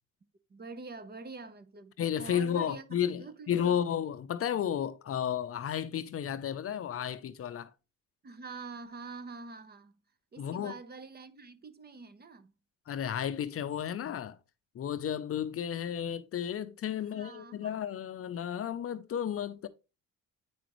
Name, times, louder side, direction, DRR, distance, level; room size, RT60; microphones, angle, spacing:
voice 1, 0.5-2.8 3.2-3.8 8.2-9.9 10.3-12.5 16.9-17.9, right 4 dB, 30° right, 0.8 m, -46 dB
voice 2, 2.0-7.7 10.4-10.7 12.9-14.4 14.7-19.7, left 9 dB, 45° left, 0.6 m, -33 dB
8.7 x 5.0 x 3.0 m
cardioid pair, 90°, 31 cm